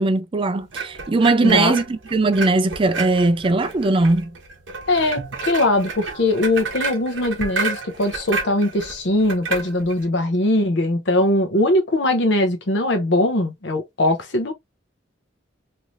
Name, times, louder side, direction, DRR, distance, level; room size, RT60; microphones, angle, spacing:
voice 1, 0.0-4.3, right 3 dB, 25° right, 0.4 m, -19 dB
sound 1, 0.7-10.1, right 4 dB, 65° right, 1.0 m, -31 dB
voice 2, 1.4-1.8 4.9-14.5, left 1 dB, 65° left, 0.8 m, -21 dB
3.1 x 2.8 x 2.5 m
head